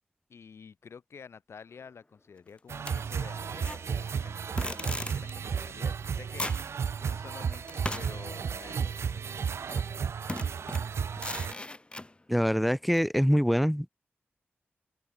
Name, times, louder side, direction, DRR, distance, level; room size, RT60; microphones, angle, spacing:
voice 1, 0.3-9.5, left 6 dB, 80° left, 3.8 m, -49 dB
sound 1, 2.7-11.5, right 6 dB, 85° right, 1.1 m, -33 dB
sound 2, 2.9-3.8 4.6-5.3 6.0-6.1 6.4-6.7 7.7-9.1 9.7-9.9 10.3-12.1 12.9-13.0, left 2 dB, 25° left, 1.4 m, -38 dB
voice 2, 12.3-13.9, equal, ahead, 0.6 m, -24 dB
open air
cardioid pair, 55°, 4 cm